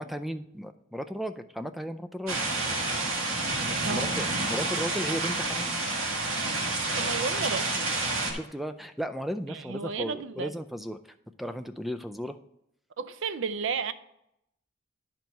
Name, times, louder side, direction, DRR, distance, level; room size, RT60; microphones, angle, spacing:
voice 1, 0.0-2.4 3.7-5.7 8.3-11.0 11.4-12.4, equal, ahead, 9 dB, 0.3 m, -35 dB
sound 1, 2.3-8.3, right 2 dB, 90° right, 1.7 m, -29 dB
voice 2, 7.0-7.8 9.5-10.5 13.0-13.9, right 5 dB, 70° right, 14 dB, 0.5 m, -32 dB
10.5 x 4.6 x 5.3 m, 0.79 s
head